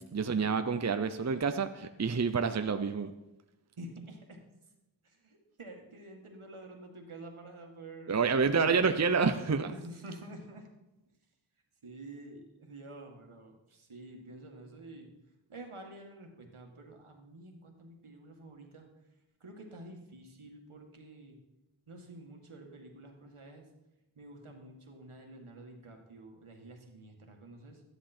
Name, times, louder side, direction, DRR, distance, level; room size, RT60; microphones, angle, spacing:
voice 1, 0.1-3.1 8.1-9.7, right 5 dB, 35° right, 9 dB, 0.6 m, -28 dB
voice 2, 3.8-4.4 5.0-8.2 8.5-8.6 9.6-10.7 11.8-15.1 15.5-18.9 19.4-21.4 21.9-23.7 24.2-27.8, right 2 dB, 80° right, 2 dB, 1.9 m, -49 dB
12.0 x 10.5 x 4.3 m, 0.96 s
wide cardioid pair, 45°, 50 cm